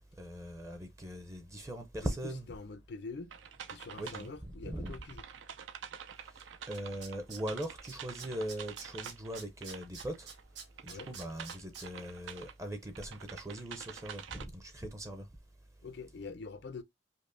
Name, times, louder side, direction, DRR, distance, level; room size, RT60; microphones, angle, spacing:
voice 1, 0.2-2.6 4.0-5.0 6.7-10.3 10.8-15.3, right 1 dB, 15° right, 0.5 m, -40 dB
voice 2, 2.5-3.3 3.7-5.2 10.9-11.1 15.8-16.8, left 4 dB, 65° left, 0.5 m, -45 dB
sound 1, 3.3-4.3 4.8-10.5 10.7-12.5 12.9-14.4, right 8 dB, 80° right, 0.4 m, -47 dB
Tools, 6.4-6.5 6.7-7.9 8.2-11.9 12.2-12.3, right 6 dB, 65° right, 1.2 m, -47 dB
5.2 x 2.1 x 2.5 m
head